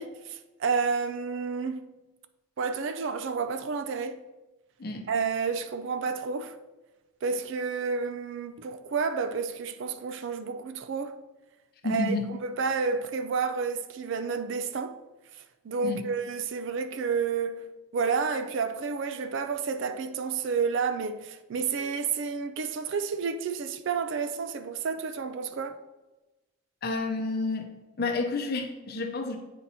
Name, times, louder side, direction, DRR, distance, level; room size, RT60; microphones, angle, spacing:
voice 1, 0.0-1.9 2.6-4.2 5.1-6.6 7.2-11.2 11.8-15.0 15.6-17.7 17.9-25.8, right 5 dB, 60° right, 0.4 m, -30 dB
voice 2, 11.8-12.3 15.8-16.1 26.8-27.7 28.0-29.4, left 3 dB, 45° left, 0.6 m, -30 dB
8.6 x 2.9 x 4.0 m
head